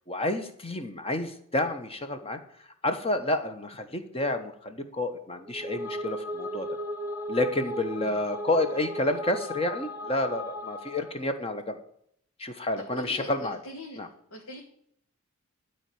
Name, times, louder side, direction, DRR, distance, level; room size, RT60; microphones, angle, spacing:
voice 1, 0.1-2.4 2.8-6.7 7.3-11.8 12.4-13.6 14.0-14.1, left 2 dB, 25° left, 7 dB, 1.1 m, -29 dB
sound 1, 5.4-11.2, equal, 10° right, 1.2 m, -36 dB
voice 2, 12.8-14.0 14.3-14.6, equal, 80° left, 1 dB, 1.7 m, -42 dB
12.5 x 4.6 x 8.5 m, 0.69 s
head